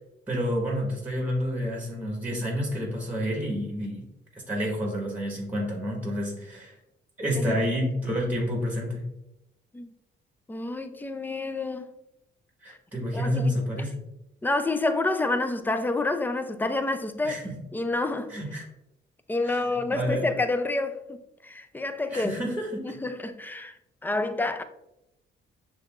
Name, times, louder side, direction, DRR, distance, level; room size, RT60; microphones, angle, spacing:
voice 1, 0.3-4.0 4.3-6.7 7.2-9.0 12.6-13.9 17.2-17.6 18.3-18.6 19.4-20.3 22.1-23.0, equal, 10° right, 1.2 m, -29 dB
voice 2, 10.5-11.9 12.7-12.8 13.1-13.5 14.4-17.4 17.7-18.3 19.3-22.3 22.8-24.6, left 2 dB, 10° left, 0.4 m, -28 dB
6.6 x 3.0 x 2.4 m
cardioid pair, 90°, 20 cm